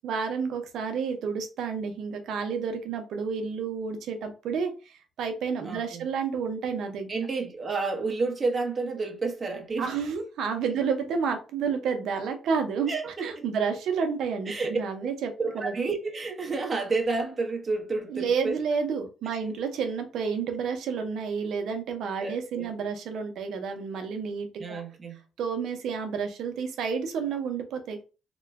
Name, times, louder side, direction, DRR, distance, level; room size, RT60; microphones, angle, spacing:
voice 1, 0.0-7.1 9.8-15.7 18.1-24.8 25.4-28.0, right 6 dB, 75° right, 0.7 m, -30 dB
voice 2, 5.6-6.1 7.1-9.9 12.9-13.4 14.5-14.8 15.4-18.5 19.4-19.5 22.2-22.7 24.6-25.2, right 3 dB, 35° right, 0.9 m, -30 dB
3.0 x 2.2 x 3.4 m
cardioid pair, 90°, 0 cm